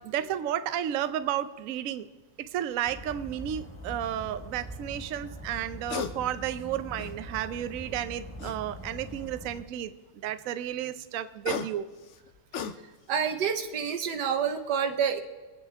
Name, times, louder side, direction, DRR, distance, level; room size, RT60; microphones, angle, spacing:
voice 1, 0.0-2.1 2.4-9.9 10.2-11.9, right 11 dB, 90° right, 12 dB, 0.7 m, -32 dB
sound 1, 2.7-2.9 5.6-6.1 6.6-7.4 8.4-9.1 11.1-13.2 13.6-13.9, left 6 dB, 85° left, 0.6 m, -37 dB
sound 2, 2.9-9.6, equal, 10° left, 1.1 m, -43 dB
voice 2, 13.1-15.2, right 7 dB, 60° right, 7 dB, 1.5 m, -28 dB
25.0 x 8.9 x 3.5 m, 1.3 s
omnidirectional pair, 2.2 m